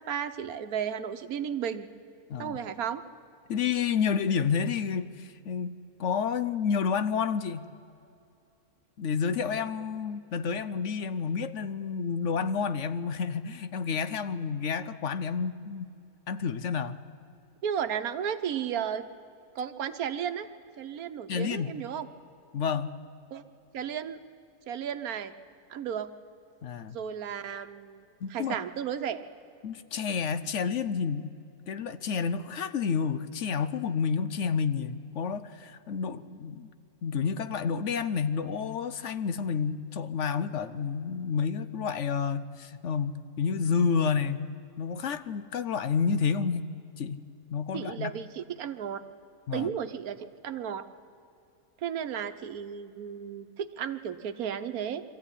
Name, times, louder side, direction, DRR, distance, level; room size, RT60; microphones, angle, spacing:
voice 1, 0.0-1.9 2.4-3.0 17.6-19.1 19.5-20.5 20.8-22.1 23.3-23.4 23.7-24.2 24.7-25.3 25.7-26.1 26.9-29.2 47.7-49.0 49.5-50.9 51.8-55.0, right 8 dB, 80° right, 10 dB, 1.4 m, -34 dB
voice 2, 3.5-7.7 9.0-15.9 16.3-17.0 21.3-21.7 22.5-23.0 26.6-27.0 28.2-28.6 29.6-31.3 31.7-36.7 37.0-47.2 47.5-48.1 49.5-49.7, left 6 dB, 60° left, 13 dB, 1.0 m, -30 dB
23.0 x 14.5 x 9.8 m, 2.6 s
omnidirectional pair, 1.5 m